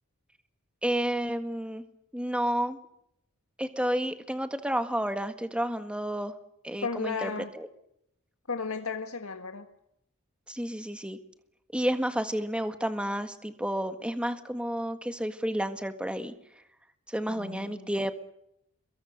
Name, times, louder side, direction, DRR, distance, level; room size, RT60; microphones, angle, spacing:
voice 1, 0.8-1.8 2.1-2.8 3.6-6.3 6.6-7.7 10.5-11.2 11.7-16.3 17.1-18.1, equal, 5° right, 9 dB, 1.7 m, -31 dB
voice 2, 6.8-7.5 8.5-9.7 17.3-17.9, left 4 dB, 75° left, 6 dB, 1.7 m, -34 dB
29.0 x 22.5 x 6.6 m, 0.78 s
head